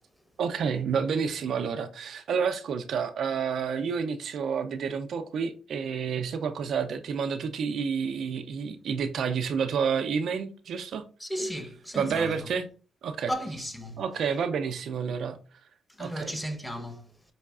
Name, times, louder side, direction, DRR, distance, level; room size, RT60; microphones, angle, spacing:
voice 1, 0.4-11.0 12.0-12.7 13.0-13.3 14.0-15.4 16.0-16.4, right 6 dB, 70° right, 0.4 m, -29 dB
voice 2, 11.2-12.5 13.3-14.0 15.9-17.2, equal, 10° left, 0.7 m, -35 dB
5.4 x 2.3 x 2.3 m
supercardioid pair, 60°, 0 cm